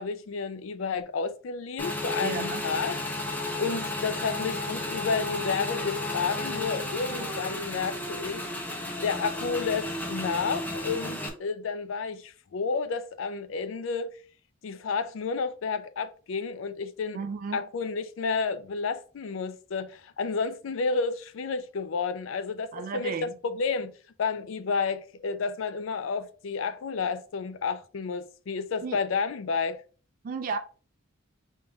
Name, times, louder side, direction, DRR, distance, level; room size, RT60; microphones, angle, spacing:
voice 1, 0.0-3.0 3.6-8.7 9.0-14.1 14.6-17.2 17.5-23.9 24.2-29.8, left 5 dB, 65° left, 0.4 m, -31 dB
Motorcycle / Engine, 1.8-11.3, left 2 dB, 10° left, 0.6 m, -33 dB
voice 2, 2.2-2.6 17.1-17.6 22.7-23.3 28.8-29.0 30.2-30.6, right 5 dB, 40° right, 0.3 m, -33 dB
5.3 x 3.6 x 2.3 m
head